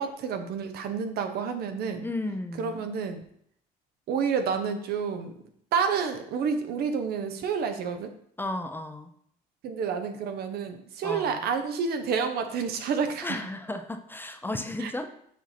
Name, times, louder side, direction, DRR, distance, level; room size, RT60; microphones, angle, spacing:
voice 1, 0.0-2.1 2.6-3.2 4.1-5.3 5.7-8.1 9.6-13.4 14.8-15.1, right 6 dB, 70° right, 7 dB, 0.8 m, -29 dB
voice 2, 2.0-2.9 8.4-9.1 11.0-11.5 13.2-15.1, left 2 dB, 10° left, 7 dB, 0.5 m, -34 dB
7.4 x 2.7 x 5.9 m, 0.67 s
cardioid pair, 110°, 17 cm